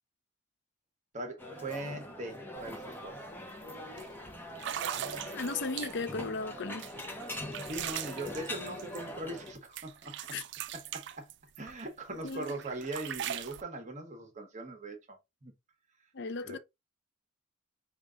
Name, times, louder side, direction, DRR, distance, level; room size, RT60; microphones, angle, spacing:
voice 1, 1.1-3.2 7.6-10.2 10.7-11.3 11.6-15.5 16.4-16.6, right 2 dB, 40° right, 1.0 m, -41 dB
sound 1, 1.4-9.5, left 1 dB, 10° left, 0.8 m, -42 dB
sound 2, 2.6-2.7 3.0-3.3 4.0-4.1 4.5-6.2 6.8-9.5 9.8-11.8 12.3-13.6, right 10 dB, 60° right, 0.4 m, -40 dB
voice 2, 5.3-6.9 10.3-10.4 12.1-12.6 16.1-16.6, left 3 dB, 60° left, 0.5 m, -36 dB
4.9 x 2.4 x 3.7 m
head